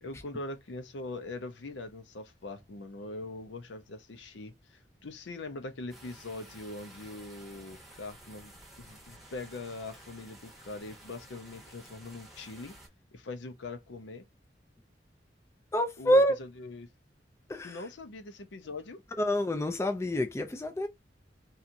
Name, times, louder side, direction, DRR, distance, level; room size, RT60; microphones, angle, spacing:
voice 1, 0.0-12.8 13.1-14.3 16.0-16.9 17.6-19.0, left 2 dB, 85° left, 0.6 m, -42 dB
sound 1, 5.9-12.9, right 1 dB, ahead, 0.8 m, -53 dB
voice 2, 15.7-16.4 17.5-17.8 19.2-20.9, equal, 15° left, 0.3 m, -27 dB
2.8 x 2.3 x 2.5 m
head